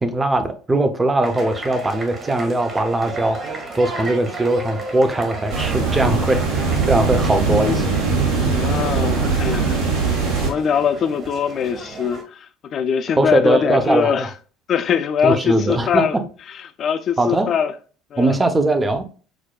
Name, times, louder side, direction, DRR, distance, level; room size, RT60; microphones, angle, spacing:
voice 1, 0.0-8.0 13.2-14.3 15.2-16.2 17.2-17.5 18.2-19.1, right 2 dB, 20° right, 0.6 m, -20 dB
sound 1, 1.2-12.2, right 2 dB, 40° right, 1.2 m, -34 dB
sound 2, 5.5-10.5, right 4 dB, 70° right, 0.9 m, -20 dB
voice 2, 8.5-9.8 10.4-14.3 14.7-16.2 16.8-17.7 18.1-18.4, left 7 dB, 45° left, 0.4 m, -22 dB
6.0 x 2.2 x 2.3 m
hypercardioid pair, 65°, 0 cm